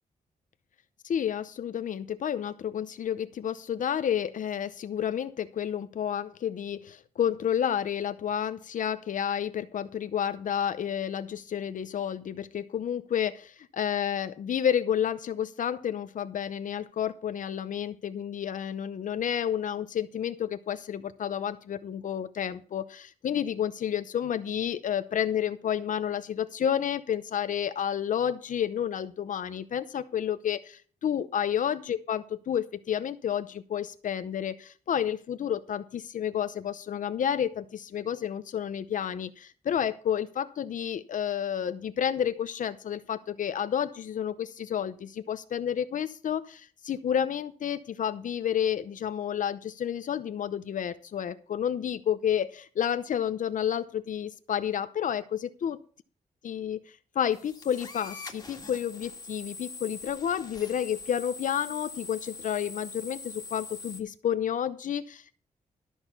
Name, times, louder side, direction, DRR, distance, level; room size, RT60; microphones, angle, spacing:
voice 1, 1.0-55.8 56.4-56.8 57.1-65.3, left 9 dB, 65° left, 12 dB, 0.7 m, -30 dB
sound 1, 57.3-64.0, left 3 dB, 25° left, 1.9 m, -43 dB
13.0 x 6.4 x 5.6 m, 0.42 s
wide cardioid pair, 160°, 14 cm